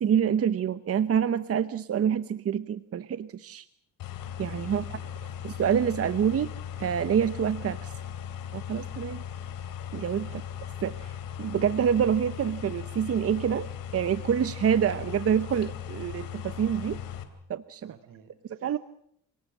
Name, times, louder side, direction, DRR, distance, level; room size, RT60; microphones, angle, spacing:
voice 1, 0.0-3.6 4.4-4.8 5.4-6.5 6.8-7.9 8.5-9.2 9.9-10.3 10.8-17.0 17.5-17.9 18.6-18.8, right 8 dB, 45° right, 13 dB, 0.9 m, -27 dB
sound 1, 4.0-17.2, left 9 dB, 85° left, 3.1 m, -38 dB
voice 2, 4.6-5.3 10.3-10.5 17.8-18.7, right 7 dB, 80° right, 10 dB, 4.7 m, -55 dB
28.0 x 18.5 x 7.3 m, 0.71 s
cardioid pair, 115°, 33 cm